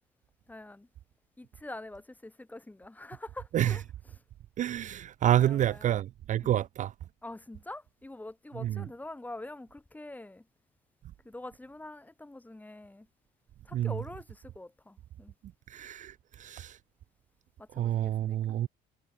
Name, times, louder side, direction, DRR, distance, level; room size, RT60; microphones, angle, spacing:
voice 1, 0.5-0.9 1.4-3.8 5.4-6.0 6.4-6.5 7.2-10.5 11.2-13.1 13.6-15.3 17.6-18.4, left 2 dB, 10° left, 2.3 m, -45 dB
voice 2, 4.6-6.9 8.5-8.9 13.7-13.9 15.7-16.8 17.7-18.7, right 12 dB, 50° right, 0.4 m, -28 dB
cardioid pair, 110°, 17 cm